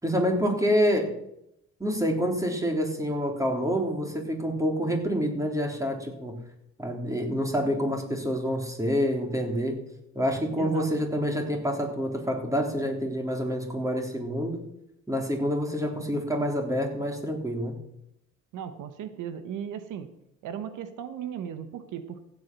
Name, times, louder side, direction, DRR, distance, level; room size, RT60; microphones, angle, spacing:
voice 1, 0.0-1.1 1.8-6.4 6.8-9.8 10.1-14.6 15.1-17.8, equal, 10° right, 2 dB, 3.6 m, -27 dB
voice 2, 10.6-10.9 18.5-20.1 20.4-22.2, right 8 dB, 90° right, 10 dB, 1.3 m, -36 dB
15.0 x 8.6 x 6.2 m, 0.80 s
cardioid pair, 90°, 30 cm